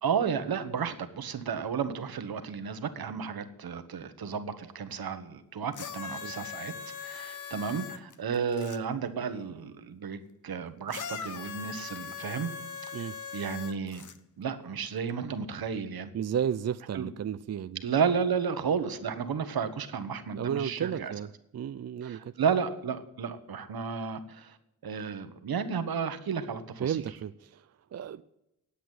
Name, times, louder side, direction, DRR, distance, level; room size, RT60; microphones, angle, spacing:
voice 1, 0.0-6.7 7.0-12.5 13.0-14.1 14.4-16.1 16.9-17.1 17.8-21.1 22.0-24.6 24.8-27.0, right 6 dB, 80° right, 10 dB, 1.3 m, -32 dB
sound 1, 5.7-8.8 10.9-14.2 15.1-15.2, left 7 dB, 55° left, 0.9 m, -40 dB
voice 2, 16.1-17.8 20.3-22.3 26.8-28.2, right 8 dB, 45° right, 12 dB, 0.4 m, -33 dB
10.0 x 8.2 x 9.1 m, 0.85 s
wide cardioid pair, 115°, 36 cm